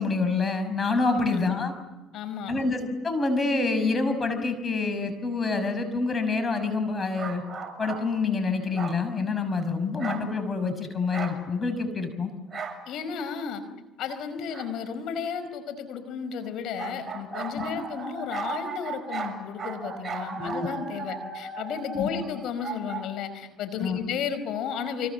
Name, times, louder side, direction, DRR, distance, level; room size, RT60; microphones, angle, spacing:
voice 1, 0.0-1.7 2.5-2.8 3.0-7.4 7.8-12.3 17.5-17.6 20.4-20.7 21.9-22.1 23.8-24.0, left 4 dB, 30° left, 9 dB, 5.8 m, -27 dB
voice 2, 0.8-1.4 2.1-2.5 12.9-13.6 14.0-25.1, left 7 dB, 65° left, 10 dB, 4.8 m, -33 dB
sound 1, 7.1-8.1 8.7-9.0 10.0-10.3 11.1-11.4 12.5-12.8 14.5-14.7 16.8-23.0, right 4 dB, 30° right, 7.0 m, -36 dB
28.0 x 24.5 x 7.3 m, 1.0 s
supercardioid pair, 80°, 0 cm